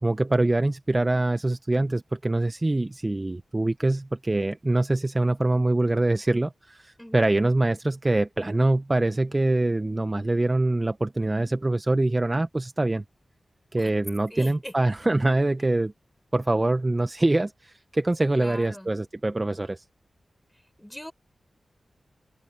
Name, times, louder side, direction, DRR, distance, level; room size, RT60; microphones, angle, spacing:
voice 1, 0.0-13.0 13.7-15.9 16.3-19.8, right 2 dB, 30° right, 1.1 m, -24 dB
voice 2, 14.3-14.7 18.3-18.9 20.8-21.1, equal, 5° left, 6.2 m, -40 dB
open air
cardioid pair, 50°, 0 cm